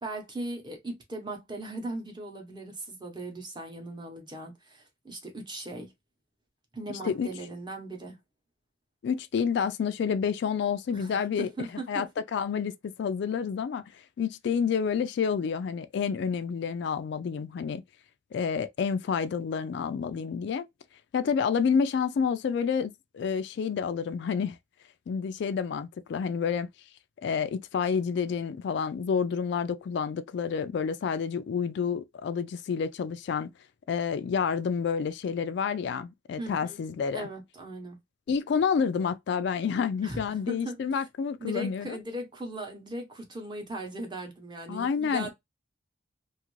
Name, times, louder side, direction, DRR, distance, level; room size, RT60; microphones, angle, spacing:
voice 1, 0.0-5.9 6.7-8.2 10.9-12.1 36.4-36.8 37.1-38.0 40.0-41.0 41.4-45.3, right 2 dB, 25° right, 0.8 m, -38 dB
voice 2, 6.9-7.3 9.0-11.5 11.9-12.1 12.3-12.7 13.0-17.8 18.3-20.7 21.1-24.6 25.1-26.7 27.2-33.5 33.9-37.3 38.3-42.0 44.7-45.3, left 6 dB, 60° left, 0.3 m, -29 dB
2.6 x 2.5 x 3.0 m
head